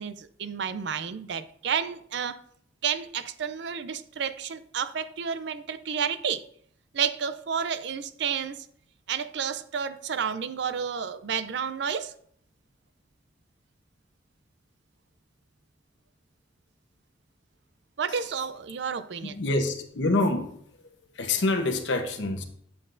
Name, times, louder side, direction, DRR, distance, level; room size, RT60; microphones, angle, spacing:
voice 1, 0.0-2.4 2.8-6.4 6.9-8.7 9.1-12.1 18.0-19.3, right 7 dB, 65° right, 0.5 m, -31 dB
voice 2, 19.2-20.5 21.1-22.4, left 2 dB, 70° left, 1.0 m, -26 dB
8.4 x 7.7 x 2.6 m
head